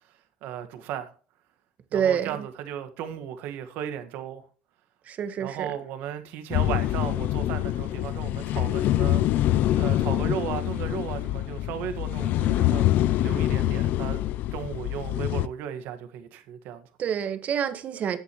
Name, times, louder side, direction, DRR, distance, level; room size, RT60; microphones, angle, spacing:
voice 1, 0.4-1.1 1.9-4.4 5.4-9.5 9.7-12.9 13.2-14.2 14.5-16.9, right 9 dB, 70° right, 1.6 m, -35 dB
voice 2, 1.9-2.4 5.1-5.8 17.0-18.2, right 8 dB, 45° right, 1.4 m, -27 dB
sea wave sounds like breathing, 6.5-15.5, left 14 dB, 65° left, 0.5 m, -25 dB
13.5 x 8.4 x 3.1 m
supercardioid pair, 100°, 3 cm